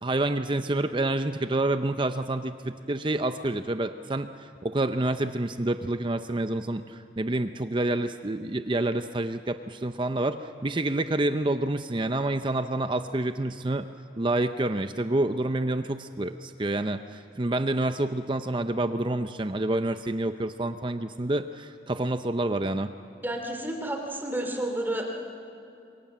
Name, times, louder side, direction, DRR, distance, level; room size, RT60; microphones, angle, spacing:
voice 1, 0.0-13.9 14.2-22.9, right 2 dB, 25° right, 9 dB, 0.6 m, -28 dB
voice 2, 23.2-25.3, right 1 dB, 10° right, 2 dB, 2.8 m, -31 dB
27.5 x 24.0 x 7.5 m, 2.7 s
head